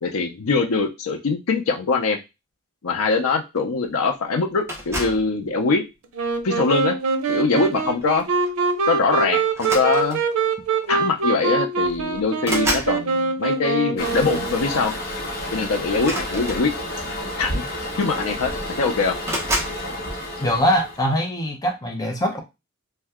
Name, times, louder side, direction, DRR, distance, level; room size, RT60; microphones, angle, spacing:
voice 1, 0.0-2.2 2.8-5.8 6.4-6.9 7.3-8.2 8.9-10.2 10.9-14.9 15.5-16.7 17.4-17.6 18.0-18.5 18.8-19.1, left 4 dB, 85° left, 4 dB, 0.6 m, -22 dB
sound 1, 4.7-5.3 6.2-6.5 8.0-8.2 8.5-8.6 9.5-10.4 11.4-11.5 11.8-13.0 15.9-17.0 17.9-18.0 18.3-18.8 19.2-19.8, right 1 dB, 15° right, 0.8 m, -29 dB
Wind instrument woodwind instrument, 6.1-14.9, right 4 dB, 90° right, 0.6 m, -24 dB
Toilet flush, 14.0-21.1, left 1 dB, 50° left, 1.0 m, -30 dB
voice 2, 20.4-22.4, equal, 15° left, 2 dB, 0.6 m, -22 dB
2.8 x 2.2 x 3.4 m, 0.24 s
head